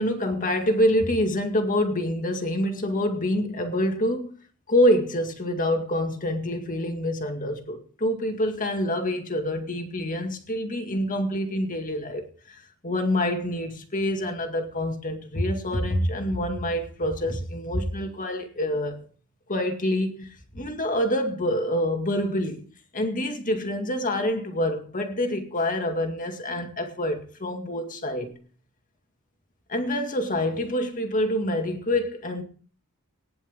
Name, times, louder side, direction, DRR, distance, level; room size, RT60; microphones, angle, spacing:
voice 1, 0.0-4.4 4.7-19.0 19.5-22.7 22.9-28.4 29.7-32.4, left 1 dB, 35° left, 2.0 m, -26 dB
19.5 x 10.5 x 3.6 m
head